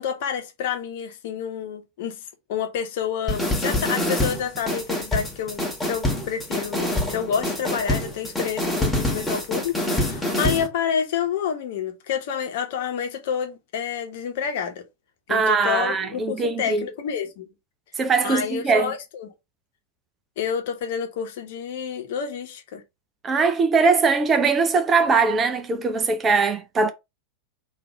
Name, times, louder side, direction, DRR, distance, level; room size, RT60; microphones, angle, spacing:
voice 1, 0.0-2.2 2.5-14.8 15.3-17.5 18.2-19.3 20.4-22.8, left 8 dB, 50° left, 1.1 m, -29 dB
sound 1, 3.3-10.7, left 1 dB, 5° left, 1.5 m, -26 dB
voice 2, 15.3-16.8 18.0-18.9 23.2-26.9, right 4 dB, 20° right, 0.7 m, -21 dB
3.9 x 2.8 x 4.8 m
figure-of-eight pair, 90°, 0 cm